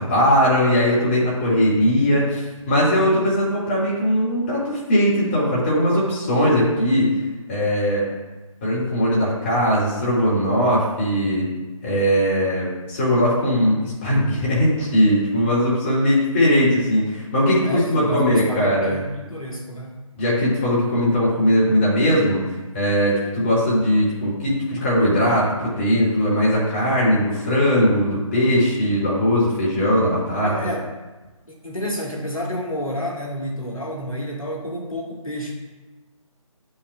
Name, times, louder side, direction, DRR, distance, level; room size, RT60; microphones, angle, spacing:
voice 1, 0.0-7.1 7.5-8.1 8.6-11.5 11.8-19.0 20.2-22.4 22.7-30.5, equal, 20° left, -7 dB, 1.9 m, -19 dB
voice 2, 17.6-20.0 30.4-30.9 31.5-35.5, equal, 80° left, 0 dB, 1.6 m, -29 dB
9.6 x 5.5 x 2.3 m, 1.2 s
figure-of-eight pair, 150°, 18 cm